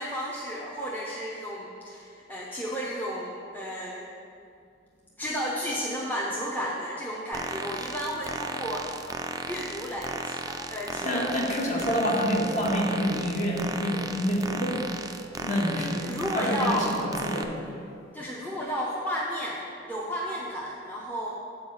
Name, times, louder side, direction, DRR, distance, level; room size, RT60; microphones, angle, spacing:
voice 1, 0.0-4.1 5.2-8.9 9.4-11.3 15.7-16.9 18.1-21.3, equal, 10° left, -5 dB, 0.7 m, -33 dB
sound 1, 7.3-17.4, right 3 dB, 20° right, 0.4 m, -36 dB
voice 2, 11.0-14.9 15.3-17.6, equal, 40° left, -2 dB, 1.4 m, -27 dB
7.1 x 4.8 x 6.9 m, 2.4 s
head